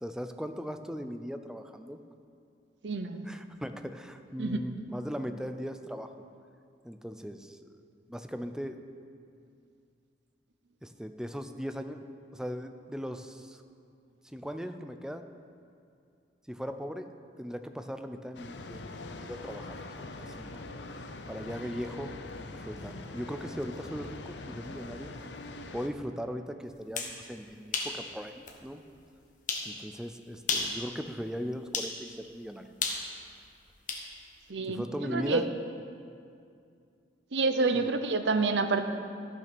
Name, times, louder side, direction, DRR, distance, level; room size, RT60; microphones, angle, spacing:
voice 1, 0.0-2.0 3.3-6.2 6.8-7.6 8.1-8.8 10.8-12.0 12.3-13.6 14.3-15.3 16.5-17.1 17.4-20.6 21.3-22.2 22.5-25.1 25.7-28.8 29.6-32.7 34.7-35.5 37.7-37.9, equal, 5° right, 8 dB, 0.5 m, -39 dB
voice 2, 2.8-3.3 4.4-4.6 34.5-35.4 37.3-38.8, right 3 dB, 70° right, 8 dB, 0.7 m, -28 dB
sound 1, 18.3-25.9, left 2 dB, 70° left, 0.7 m, -43 dB
sound 2, 26.7-27.2 27.7-28.0 28.5-28.6 29.5-29.7 30.4-30.8 31.7-31.9 32.8-34.1, left 4 dB, 45° left, 1.2 m, -32 dB
13.5 x 6.1 x 6.0 m, 2.4 s
head